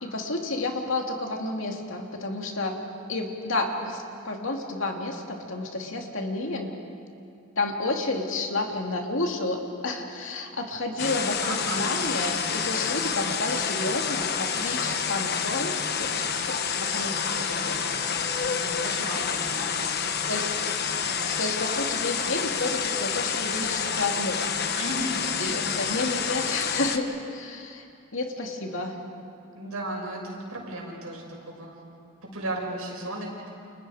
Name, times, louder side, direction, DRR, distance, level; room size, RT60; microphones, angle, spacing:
voice 1, 0.0-2.8 3.1-6.7 7.6-16.5 16.8-17.2 17.6-17.8 19.8-19.9 20.3-20.5 21.4-24.5 25.4-27.8 28.1-29.0, left 2 dB, 65° left, 2 dB, 2.6 m, -30 dB
sound 1, 11.0-27.0, left 6 dB, 50° left, 1.2 m, -28 dB
voice 2, 11.4-11.9 17.3-17.6 17.8-19.8 20.1-20.2 24.8-25.7 29.5-31.8 32.3-33.5, right 1 dB, 85° right, -1 dB, 6.3 m, -35 dB
30.0 x 28.5 x 5.0 m, 2.5 s
head